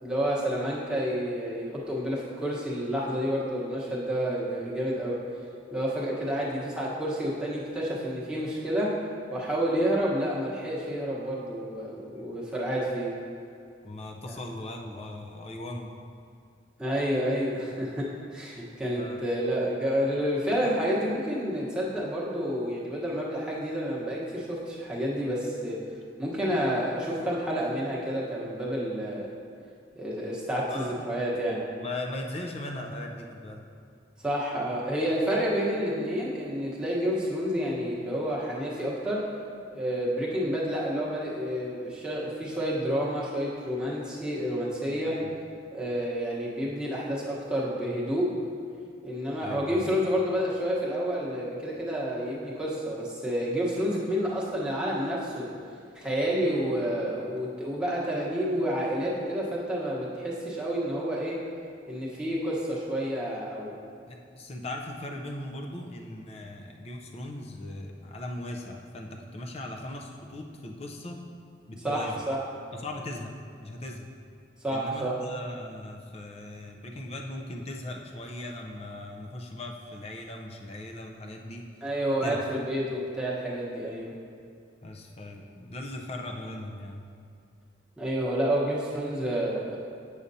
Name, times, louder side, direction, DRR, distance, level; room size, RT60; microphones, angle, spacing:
voice 1, 0.0-5.2 5.7-9.0 9.3-13.1 14.3-14.4 16.8-25.9 26.2-29.3 29.9-31.6 34.2-39.3 39.7-45.2 45.7-48.3 49.0-55.5 55.9-61.4 61.9-63.7 71.8-72.4 74.6-75.2 81.8-84.1 88.0-89.8, equal, 5° right, -7 dB, 1.1 m, -29 dB
voice 2, 13.8-15.9 19.0-19.2 30.7-31.0 31.8-33.6 45.1-45.3 49.4-49.8 64.1-71.2 71.7-72.2 72.7-73.3 73.6-74.1 74.7-81.6 82.2-82.4 84.8-87.0, left 1 dB, 35° left, 2 dB, 0.5 m, -39 dB
8.6 x 6.5 x 2.7 m, 2.3 s
head